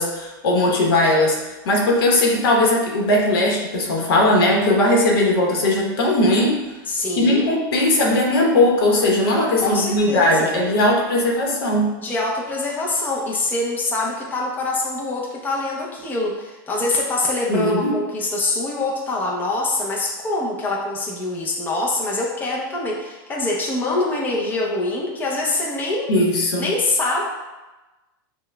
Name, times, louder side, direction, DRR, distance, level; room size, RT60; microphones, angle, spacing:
voice 1, 0.0-1.4 1.6-6.6 7.2-11.9 17.5-18.0 26.1-26.7, left 1 dB, 80° left, -2 dB, 1.0 m, -18 dB
voice 2, 6.9-7.6 9.6-10.6 12.0-26.1 26.6-27.2, left 2 dB, 15° left, -3 dB, 0.6 m, -24 dB
6.2 x 2.2 x 2.2 m, 1.1 s
supercardioid pair, 125°, 12 cm